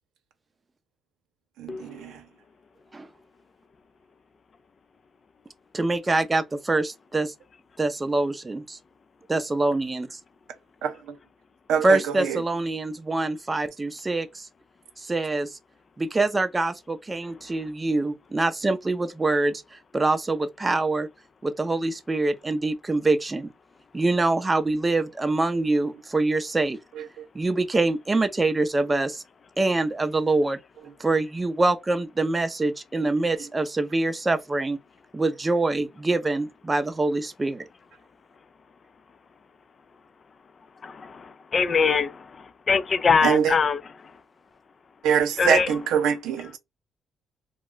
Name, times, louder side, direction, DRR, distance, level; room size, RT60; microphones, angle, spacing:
voice 1, 1.6-2.1 10.8-10.9 11.7-12.0 12.3-12.4 43.2-43.5 45.0-46.6, right 8 dB, 90° right, 0.7 m, -23 dB
voice 2, 5.7-7.3 7.8-8.8 9.3-10.2 11.8-14.5 15.0-15.6 16.0-21.1 21.4-23.5 23.9-26.8 27.3-29.2 29.6-30.6 31.0-34.8 35.1-37.6, right 2 dB, 20° right, 0.5 m, -25 dB
voice 3, 40.8-41.1 41.5-42.1 42.7-43.8 45.4-45.7, left 5 dB, 40° left, 0.4 m, -22 dB
2.4 x 2.1 x 3.7 m
cardioid pair, 90°, 0 cm